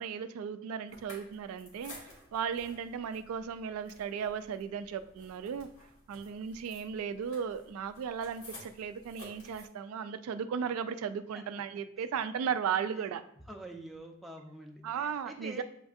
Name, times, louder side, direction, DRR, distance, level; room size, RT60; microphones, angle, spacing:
voice 1, 0.0-2.0 2.3-5.7 6.1-13.2 14.8-15.6, right 7 dB, 90° right, 11 dB, 0.3 m, -36 dB
sound 1, 0.9-9.7, left 1 dB, 85° left, 1.6 m, -54 dB
voice 2, 13.5-15.6, right 1 dB, ahead, 0 dB, 0.4 m, -46 dB
7.8 x 2.6 x 2.4 m, 0.72 s
head